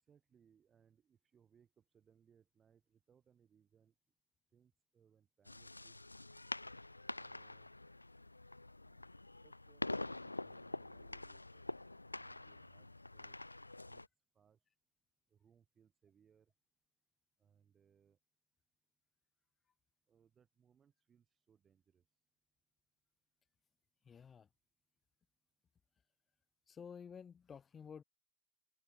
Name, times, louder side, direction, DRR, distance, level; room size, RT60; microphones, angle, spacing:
voice 1, 0.0-3.9 4.5-5.9 7.2-7.7 8.8-11.6 12.1-14.0 14.3-14.6 15.3-16.5 17.4-18.2 20.1-22.0, right 7 dB, 20° right, 5.1 m, -72 dB
sound 1, 5.4-14.1, left 2 dB, 85° left, 0.6 m, -46 dB
voice 2, 24.0-24.5 26.7-28.0, left 7 dB, 20° left, 1.3 m, -52 dB
figure-of-eight pair, 90°, 0 cm